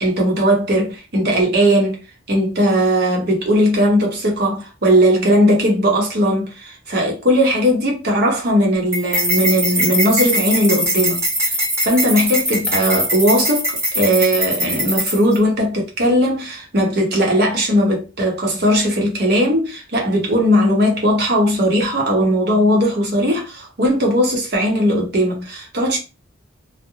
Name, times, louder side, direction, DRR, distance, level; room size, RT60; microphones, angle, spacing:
voice 1, 0.0-2.0 2.3-11.5 11.8-26.0, equal, 55° right, 0.9 m, -18 dB
sound 1, 8.9-15.4, equal, 15° right, 0.9 m, -21 dB
2.3 x 2.2 x 2.9 m
head